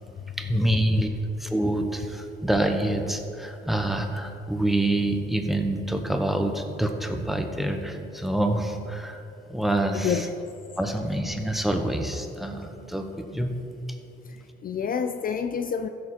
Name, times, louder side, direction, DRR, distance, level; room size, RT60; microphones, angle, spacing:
voice 1, 0.4-1.1 1.4-9.2 9.5-10.3 10.8-13.6, right 1 dB, ahead, 5 dB, 1.1 m, -26 dB
voice 2, 14.3-15.9, left 7 dB, 45° left, 8 dB, 0.5 m, -28 dB
15.0 x 6.7 x 4.4 m, 2.7 s
cardioid pair, 90°, 20 cm